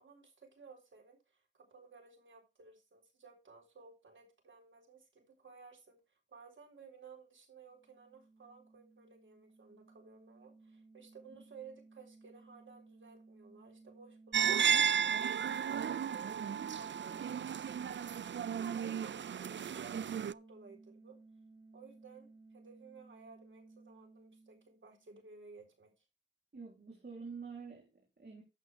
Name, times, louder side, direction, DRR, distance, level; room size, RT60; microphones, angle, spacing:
voice 1, 0.0-6.0 6.3-15.6 16.1-16.3 16.6-21.2 21.7-25.9, right 5 dB, 90° right, 3.8 m, -57 dB
sound 1, 7.7-25.2, right 3 dB, 25° right, 2.6 m, -59 dB
sound 2, 14.3-20.3, right 7 dB, 70° right, 0.4 m, -33 dB
voice 2, 26.5-28.4, right 5 dB, 55° right, 3.4 m, -48 dB
11.5 x 7.6 x 3.4 m
wide cardioid pair, 60°, 19 cm